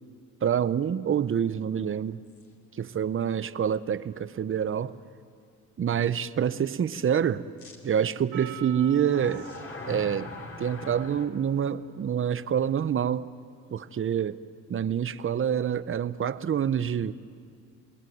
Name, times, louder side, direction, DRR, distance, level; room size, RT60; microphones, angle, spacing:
voice 1, 0.4-2.2 2.8-4.9 5.8-7.4 7.8-9.5 9.9-10.3 10.6-13.3 13.7-14.4 14.7-17.1, right 8 dB, 45° right, 14 dB, 0.9 m, -27 dB
sound 1, 2.3-2.4 3.1-3.2 7.6-7.8 9.0-11.3, left 3 dB, 45° left, 3.9 m, -41 dB
Percussion, 8.3-13.3, right 12 dB, 90° right, 2.2 m, -47 dB
29.0 x 20.0 x 9.5 m, 2.2 s
cardioid pair, 90°, 30 cm